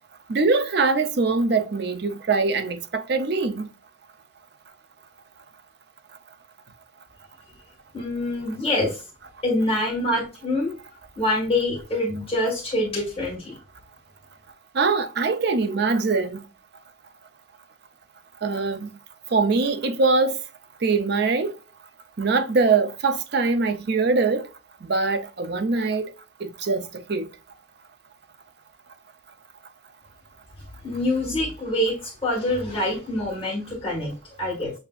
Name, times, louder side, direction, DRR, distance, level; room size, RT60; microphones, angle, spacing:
voice 1, 0.3-3.7 14.8-16.4 18.4-18.9 19.3-20.3 20.8-21.5 22.2-24.5 24.9-26.1 26.4-27.3, right 4 dB, 55° right, 0.5 m, -22 dB
voice 2, 7.9-9.0 9.4-10.7 11.2-13.6 30.8-34.7, left 1 dB, 30° left, 1.6 m, -25 dB
6.8 x 2.7 x 2.4 m
head